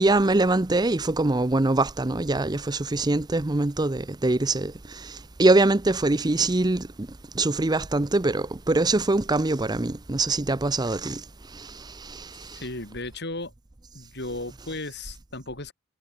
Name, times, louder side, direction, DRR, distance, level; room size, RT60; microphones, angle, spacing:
voice 1, 0.0-6.9 7.4-11.2 11.5-12.6, right 2 dB, 20° right, 0.6 m, -23 dB
voice 2, 12.3-13.5 13.9-15.7, left 2 dB, 55° left, 6.1 m, -35 dB
head